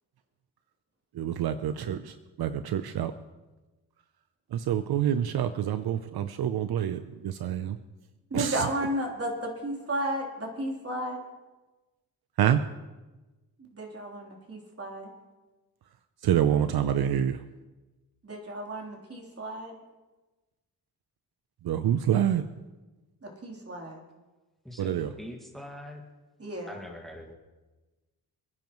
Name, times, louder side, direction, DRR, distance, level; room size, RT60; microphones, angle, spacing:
voice 1, 1.1-3.1 4.5-7.8 8.3-8.7 12.4-12.6 16.2-17.4 21.6-22.4 24.8-25.1, right 10 dB, 70° right, 10 dB, 0.7 m, -27 dB
voice 2, 8.3-11.2 13.7-15.1 18.2-19.7 23.2-24.0 26.4-26.8, right 1 dB, 35° right, -1 dB, 3.5 m, -33 dB
voice 3, 24.6-26.0 26.7-27.3, left 1 dB, ahead, 2 dB, 1.9 m, -43 dB
26.5 x 10.5 x 3.1 m, 1.2 s
cardioid pair, 90°, 39 cm